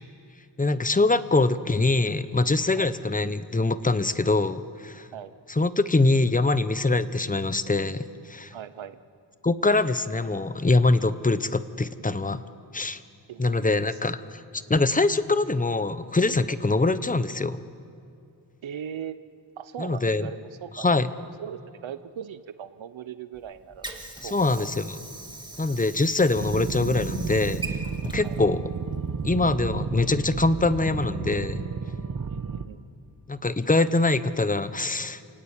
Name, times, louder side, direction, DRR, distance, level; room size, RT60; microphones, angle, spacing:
voice 1, 0.6-5.1 5.6-8.5 9.4-12.4 12.7-13.0 13.4-17.7 19.8-20.3 20.8-21.1 24.2-25.0 25.6-27.8 28.0-28.6 29.2-31.6 33.3-35.2, left 3 dB, 20° left, 13 dB, 0.9 m, -24 dB
voice 2, 8.5-9.0 13.3-14.0 18.6-19.2 19.6-20.9 21.2-23.9 24.2-24.7 25.3-25.4 28.2-28.4 32.1-32.8, right 9 dB, 85° right, 12 dB, 0.8 m, -39 dB
Water / Sink (filling or washing), 23.3-29.3, right 2 dB, 10° right, 2.3 m, -42 dB
sound 1, 26.4-32.7, right 5 dB, 45° right, 1.2 m, -32 dB
28.0 x 18.0 x 8.9 m, 2.5 s
wide cardioid pair, 90°, 45 cm